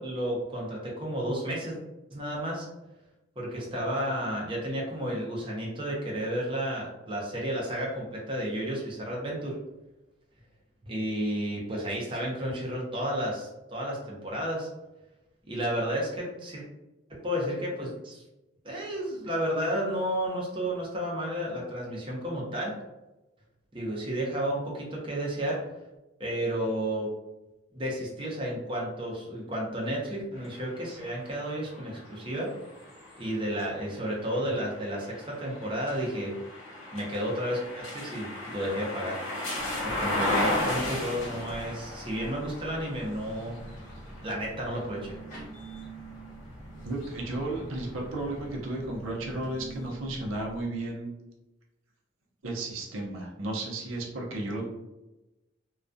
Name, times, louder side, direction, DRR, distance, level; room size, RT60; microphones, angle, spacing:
voice 1, 0.0-1.8 2.1-2.7 3.4-9.6 10.8-14.7 15.4-16.6 17.1-18.2 18.6-22.8 23.7-25.6 26.2-27.1 27.7-32.5 33.2-36.4 36.9-39.2 39.8-43.6 44.2-45.2, equal, 25° right, -3 dB, 0.6 m, -32 dB
sound 1, 30.4-46.3 46.9-48.1, left 1 dB, 80° left, 1.1 m, -36 dB
sound 2, 39.6-50.6, right 2 dB, 40° left, 0.8 m, -45 dB
voice 2, 46.8-51.1 52.4-54.6, right 2 dB, 85° right, -1 dB, 0.6 m, -33 dB
2.3 x 2.2 x 2.5 m, 0.99 s
head